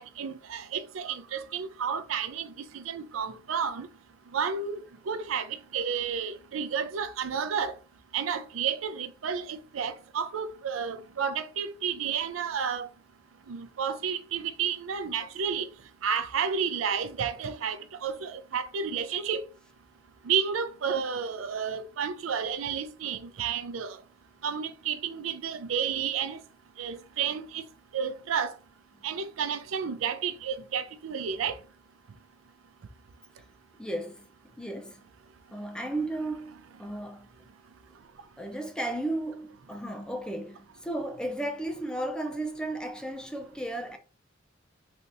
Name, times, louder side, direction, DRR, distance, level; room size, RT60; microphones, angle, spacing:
voice 1, 0.0-3.9 4.3-4.8 5.1-7.7 8.1-12.9 13.5-15.7 16.0-19.4 20.2-24.0 24.4-26.4 26.8-27.6 27.9-28.5 29.0-31.6, right 7 dB, 90° right, 0.4 m, -31 dB
voice 2, 33.7-34.3 34.6-35.0 35.5-37.3 38.4-44.0, right 1 dB, 5° left, 0.4 m, -34 dB
3.3 x 2.7 x 2.6 m
head